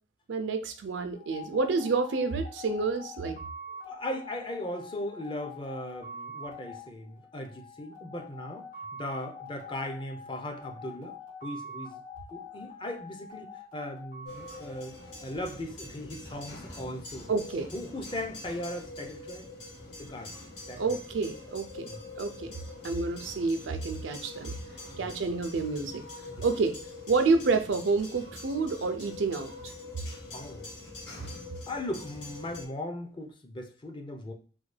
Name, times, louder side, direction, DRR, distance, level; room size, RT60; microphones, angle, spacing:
voice 1, 0.3-3.4 17.3-17.7 20.8-21.9 22.2-22.6 22.8-24.6 25.0-26.0 26.4-26.8 27.1-29.5, right 4 dB, 85° right, 9 dB, 0.5 m, -29 dB
sound 1, 1.2-15.6, left 2 dB, 50° left, 1.7 m, -45 dB
voice 2, 3.9-12.0 12.3-15.0 15.2-17.3 17.7-19.5 20.0-20.4 20.6-20.8 21.8-22.0 24.9-25.1 26.3-26.5 30.3-30.7 31.7-34.3, left 1 dB, 25° left, 4 dB, 0.5 m, -38 dB
sound 2, 14.3-32.7, left 2 dB, 75° left, 1.5 m, -44 dB
3.1 x 2.2 x 3.2 m, 0.41 s
head